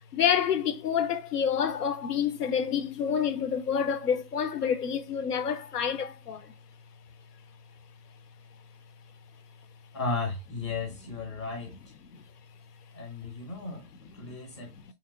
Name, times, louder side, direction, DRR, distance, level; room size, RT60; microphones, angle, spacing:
voice 1, 0.1-6.4, left 8 dB, 75° left, 0.6 m, -28 dB
voice 2, 9.9-11.7 12.9-13.8 14.1-14.7, left 3 dB, 20° left, 0.6 m, -34 dB
2.8 x 2.8 x 2.6 m
figure-of-eight pair, 145°, 47 cm